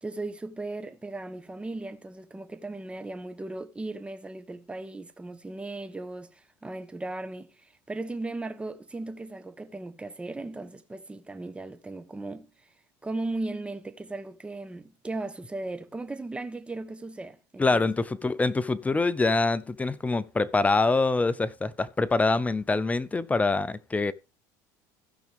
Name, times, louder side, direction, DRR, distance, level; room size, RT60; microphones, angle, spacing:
voice 1, 0.0-12.5 13.0-17.6, right 2 dB, 10° right, 1.1 m, -37 dB
voice 2, 17.6-24.1, left 3 dB, 15° left, 0.6 m, -25 dB
15.5 x 6.0 x 3.5 m
supercardioid pair, 100°, 10 cm